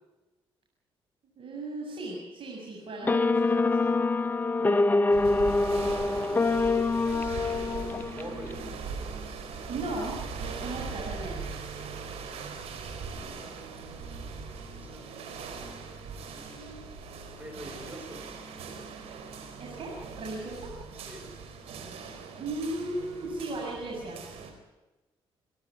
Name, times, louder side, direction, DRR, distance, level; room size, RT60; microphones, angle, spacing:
voice 1, 1.4-3.9 9.7-11.5 19.6-20.7 22.3-24.2, right 2 dB, 60° right, -2 dB, 7.1 m, -36 dB
sound 1, 3.0-8.6, left 3 dB, 20° left, 1.0 m, -25 dB
sound 2, 5.1-24.5, right 5 dB, 85° right, 4.2 m, -40 dB
voice 2, 6.2-8.6 14.4-15.1 16.3-16.9 17.4-18.3 20.9-21.3, right 1 dB, 15° right, 5 dB, 7.4 m, -45 dB
26.5 x 12.5 x 9.8 m, 1.1 s
cardioid pair, 75°, 10 cm